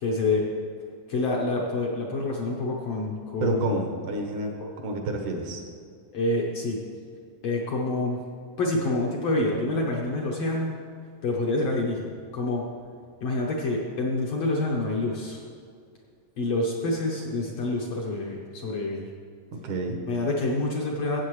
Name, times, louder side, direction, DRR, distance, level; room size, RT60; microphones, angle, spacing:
voice 1, 0.0-0.5 1.1-3.8 4.6-4.7 6.1-6.8 7.4-8.2 8.6-10.8 11.2-12.7 13.2-15.4 16.4-19.1 20.1-21.2, left 2 dB, 65° left, -2 dB, 1.7 m, -27 dB
voice 2, 3.4-4.5 4.8-5.6 19.6-20.0, right 2 dB, 70° right, 3 dB, 2.4 m, -29 dB
14.5 x 8.1 x 3.2 m, 2.3 s
omnidirectional pair, 3.8 m